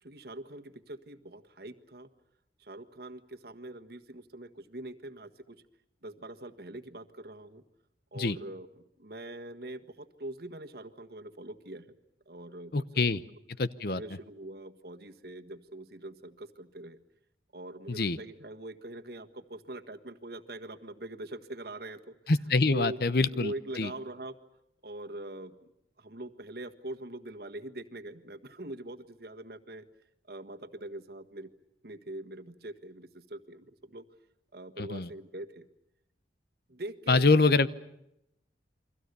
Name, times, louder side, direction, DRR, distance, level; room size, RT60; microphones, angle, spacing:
voice 1, 0.0-2.1 2.6-5.6 6.0-7.6 8.1-11.9 12.2-13.2 13.9-17.0 17.5-22.1 22.7-23.0 23.3-24.4 24.8-25.6 26.0-29.8 30.3-31.5 31.8-34.1 34.5-35.7 36.7-37.6, right 1 dB, 55° right, 6 dB, 1.6 m, -43 dB
voice 2, 12.7-13.2 13.6-14.0 17.9-18.2 22.3-23.9 34.8-35.1 37.1-37.7, left 3 dB, 55° left, 15 dB, 0.9 m, -25 dB
29.5 x 23.5 x 6.9 m, 0.81 s
head